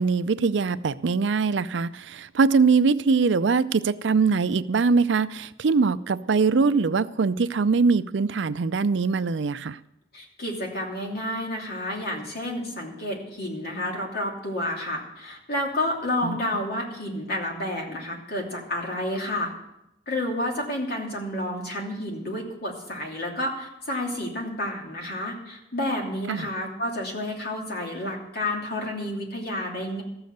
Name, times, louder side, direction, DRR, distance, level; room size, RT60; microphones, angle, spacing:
voice 1, 0.0-9.8 16.2-16.4 26.3-26.5, right 4 dB, 70° right, 14 dB, 0.5 m, -22 dB
voice 2, 10.1-19.5 20.1-30.0, left 1 dB, 55° left, -1 dB, 2.9 m, -30 dB
14.5 x 6.9 x 7.9 m, 0.86 s
head